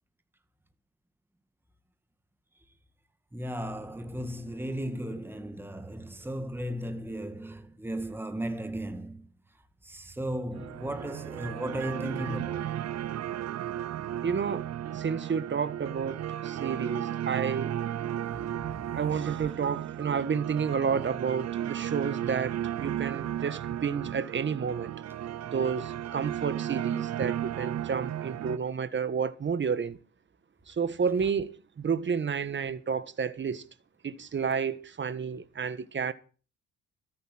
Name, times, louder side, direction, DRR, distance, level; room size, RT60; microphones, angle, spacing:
voice 1, 3.3-9.3 9.8-12.7 18.3-18.7, right 1 dB, 5° right, 1.8 m, -35 dB
sound 1, 10.5-28.6, right 11 dB, 60° right, 0.8 m, -34 dB
voice 2, 14.2-17.7 18.9-24.9 25.5-30.0 30.7-33.6 34.0-36.1, right 6 dB, 40° right, 1.6 m, -31 dB
14.0 x 8.1 x 9.9 m
cardioid pair, 90°, 30 cm